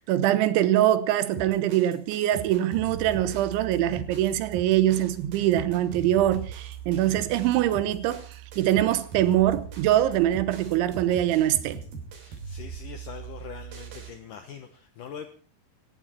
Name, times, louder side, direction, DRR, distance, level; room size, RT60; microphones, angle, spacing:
voice 1, 0.1-11.8, right 12 dB, 90° right, 3.5 m, -23 dB
sound 1, 1.3-14.1, right 6 dB, 55° right, 4.7 m, -40 dB
voice 2, 12.2-15.3, left 7 dB, 75° left, 1.9 m, -42 dB
18.0 x 15.5 x 4.4 m
omnidirectional pair, 5.2 m